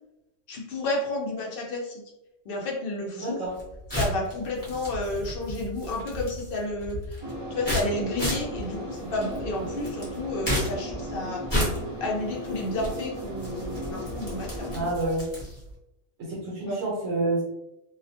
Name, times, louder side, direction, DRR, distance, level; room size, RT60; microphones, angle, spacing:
voice 1, 0.5-2.0 2.5-3.4 3.9-7.2 7.5-11.7 12.0-14.7 16.6-16.8, left 2 dB, 60° left, -1 dB, 0.6 m, -31 dB
voice 2, 3.2-3.5 14.7-15.3 16.2-17.4, right 2 dB, 75° right, -5 dB, 1.0 m, -28 dB
sound 1, 3.5-15.7, equal, 20° left, 0.7 m, -33 dB
sound 2, 7.2-14.9, equal, 30° right, 0.5 m, -36 dB
2.3 x 2.1 x 2.6 m, 0.91 s
omnidirectional pair, 1.4 m